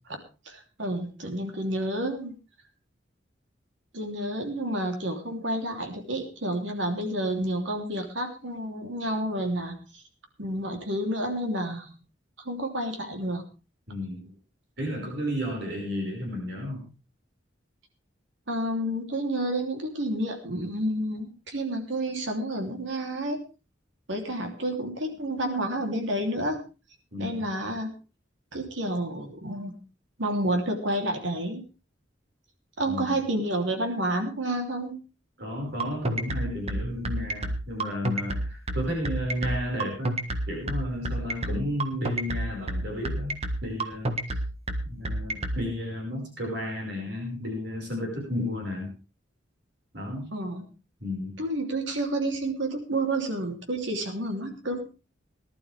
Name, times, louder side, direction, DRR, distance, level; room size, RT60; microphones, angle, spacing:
voice 1, 0.5-2.3 3.9-10.0 10.4-12.0 12.4-13.4 18.5-23.4 24.1-26.6 27.2-27.9 28.5-29.7 30.2-31.6 32.8-35.0 50.3-50.7 51.4-54.8, right 1 dB, 80° right, 4 dB, 3.1 m, -30 dB
voice 2, 13.9-14.3 14.8-16.9 27.1-27.5 32.8-33.2 35.4-40.2 40.5-44.1 44.8-48.9 49.9-50.3 51.0-51.4, left 1 dB, 65° right, 0 dB, 5.2 m, -32 dB
sound 1, 35.8-45.6, right 1 dB, 35° right, 1.5 m, -28 dB
19.5 x 12.0 x 3.4 m, 0.32 s
head